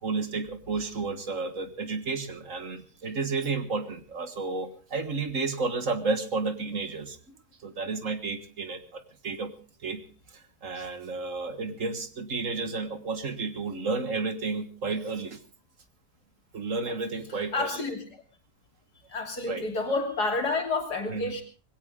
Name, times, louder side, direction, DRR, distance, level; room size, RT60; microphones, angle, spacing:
voice 1, 0.0-7.4 7.6-9.5 9.8-10.0 10.3-15.4 16.5-17.9 19.5-19.7 21.1-21.3, right 4 dB, 55° right, 9 dB, 1.9 m, -32 dB
voice 2, 17.5-18.0 19.1-21.4, left 3 dB, 90° left, 3 dB, 3.5 m, -29 dB
21.0 x 17.0 x 3.7 m, 0.35 s
omnidirectional pair, 1.7 m